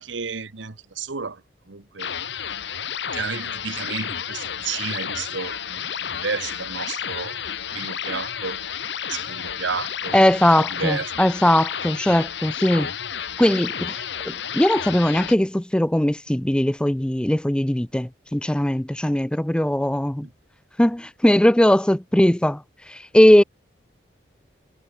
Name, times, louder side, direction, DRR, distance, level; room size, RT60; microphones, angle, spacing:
voice 1, 0.0-2.2 3.1-7.4 7.7-8.6 9.1-10.3 10.6-11.1, right 5 dB, 85° right, 1.3 m, -32 dB
sound 1, 2.0-15.3, left 8 dB, 70° left, 1.3 m, -31 dB
voice 2, 10.1-12.9 13.4-20.3 20.8-22.6 22.9-23.4, left 1 dB, 5° left, 0.3 m, -19 dB
head